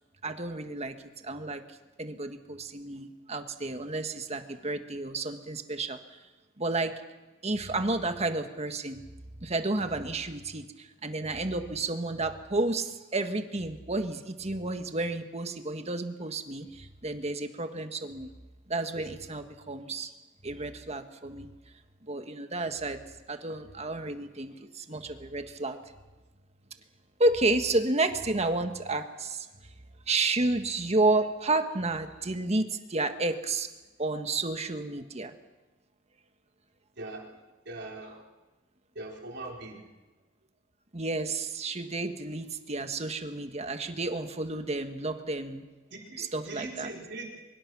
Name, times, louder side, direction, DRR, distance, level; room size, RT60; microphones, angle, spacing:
voice 1, 0.2-0.9 1.2-1.6 2.0-6.2 6.6-6.9 7.4-9.0 9.4-18.3 18.7-20.1 20.4-21.5 22.0-23.0 23.3-25.8 27.2-29.5 30.1-33.7 34.0-35.3 40.9-45.6 46.2-46.9, right 2 dB, 35° right, 7 dB, 1.7 m, -31 dB
voice 2, 37.0-37.3 37.7-38.2 38.9-39.8 45.9-47.4, right 2 dB, 60° right, 0 dB, 4.2 m, -41 dB
24.0 x 22.5 x 6.2 m, 1.2 s
head